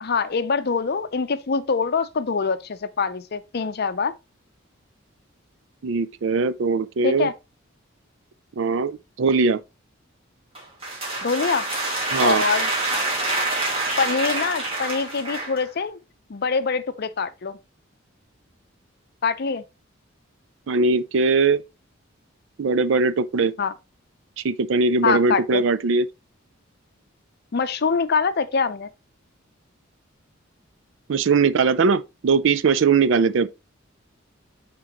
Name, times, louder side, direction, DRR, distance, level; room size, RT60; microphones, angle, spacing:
voice 1, 0.0-4.1 7.0-7.3 11.2-11.7 12.2-12.7 14.0-16.0 16.3-17.6 19.2-19.6 23.6-23.7 25.0-25.6 27.5-28.9, left 5 dB, 50° left, 0.5 m, -24 dB
voice 2, 5.8-7.3 8.6-9.6 12.1-12.4 20.7-21.6 22.6-23.5 24.4-26.1 31.1-33.5, right 4 dB, 65° right, 0.4 m, -20 dB
sound 1, 10.5-15.7, right 2 dB, 30° right, 2.2 m, -26 dB
8.8 x 3.7 x 3.0 m
head